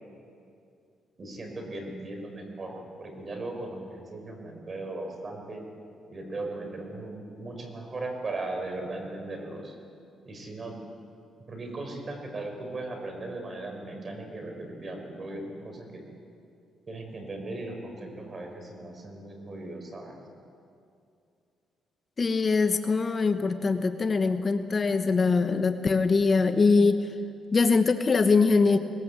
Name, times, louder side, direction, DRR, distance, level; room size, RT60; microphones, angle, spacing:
voice 1, 1.2-5.6 6.1-9.8 10.3-10.8 11.5-16.0 16.9-20.2, right 2 dB, 35° right, 3 dB, 5.4 m, -38 dB
voice 2, 22.2-27.0 27.5-28.8, left 4 dB, 35° left, 8 dB, 1.0 m, -22 dB
21.0 x 20.0 x 8.3 m, 2.5 s
cardioid pair, 90°, 0 cm